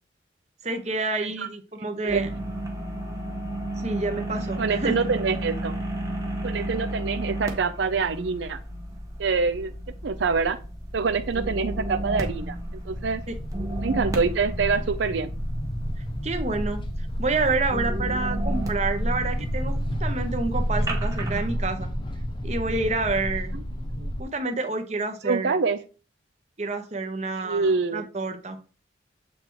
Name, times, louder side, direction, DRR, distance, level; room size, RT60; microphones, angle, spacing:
voice 1, 0.6-2.3 3.8-5.0 16.2-16.8 17.2-21.9 22.4-23.5 24.2-25.6 26.6-28.6, right 3 dB, 35° right, 6 dB, 0.9 m, -28 dB
sound 1, 2.1-21.5, right 1 dB, 20° right, 1.1 m, -33 dB
voice 2, 4.6-5.7 6.4-8.6 9.2-9.7 10.0-10.6 10.9-12.6 12.9-13.2 13.8-15.3 23.5-23.6 24.0-24.1 25.2-25.8 27.4-28.0, right 4 dB, 75° right, 8 dB, 0.5 m, -25 dB
sound 2, 7.8-24.2, equal, 25° left, 0.7 m, -31 dB
7.5 x 3.4 x 4.6 m, 0.35 s
head